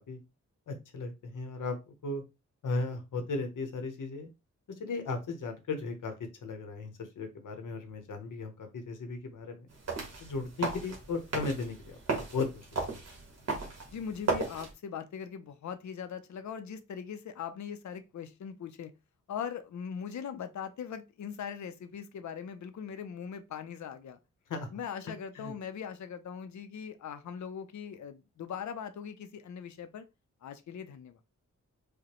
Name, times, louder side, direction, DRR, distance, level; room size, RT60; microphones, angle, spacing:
voice 1, 0.7-1.8 2.0-2.2 2.6-4.3 4.8-6.1 6.4-9.7 10.2-13.0 24.5-24.7 25.0-25.5, left 3 dB, 85° left, 1.0 m, -36 dB
sound 1, 9.7-14.7, right 3 dB, 55° right, 1.4 m, -36 dB
voice 2, 13.9-18.9 19.3-24.2 24.7-30.1 30.4-31.2, left 7 dB, 65° left, 0.6 m, -40 dB
4.9 x 2.2 x 2.9 m
wide cardioid pair, 120°, 30 cm